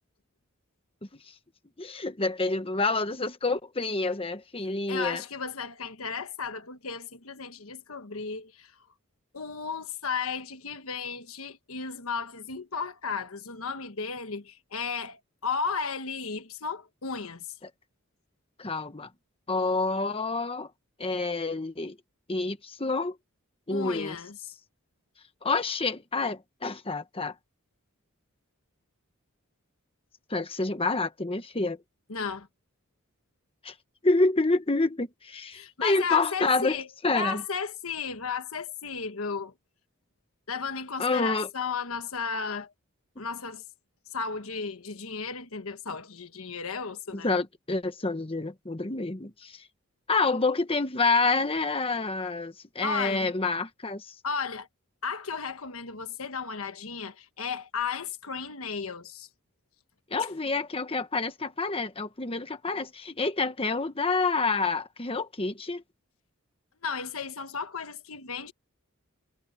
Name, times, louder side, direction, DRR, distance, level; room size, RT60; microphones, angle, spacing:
voice 1, 1.8-5.2 17.6-17.7 18.6-19.1 19.5-20.7 21.0-22.0 22.3-23.2 23.7-24.1 25.4-27.3 30.3-31.8 33.6-33.7 34.0-36.8 37.0-37.4 41.0-41.5 47.1-49.6 50.1-54.1 60.1-65.8, left 3 dB, 25° left, 1.2 m, -28 dB
voice 2, 4.9-8.7 9.3-17.5 23.7-24.4 32.1-32.5 35.5-36.9 37.1-39.5 40.5-42.7 43.2-43.6 44.1-47.3 52.8-53.3 54.2-54.7 55.0-59.3 66.8-68.5, left 5 dB, 75° left, 1.3 m, -34 dB
head